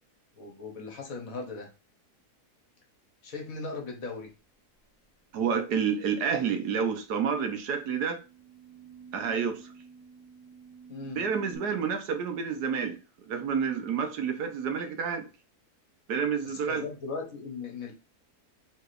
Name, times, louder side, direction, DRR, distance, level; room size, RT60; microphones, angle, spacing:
voice 1, 0.3-1.7 3.2-4.3 10.9-11.2 16.4-17.9, left 4 dB, 65° left, 1.5 m, -38 dB
voice 2, 5.3-8.2 9.1-9.7 11.1-13.0 13.3-15.3 16.1-16.8, right 6 dB, 80° right, 1.4 m, -29 dB
Microphone feedback, 7.2-11.6, right 6 dB, 15° right, 1.6 m, -51 dB
4.8 x 3.8 x 2.5 m
omnidirectional pair, 1.7 m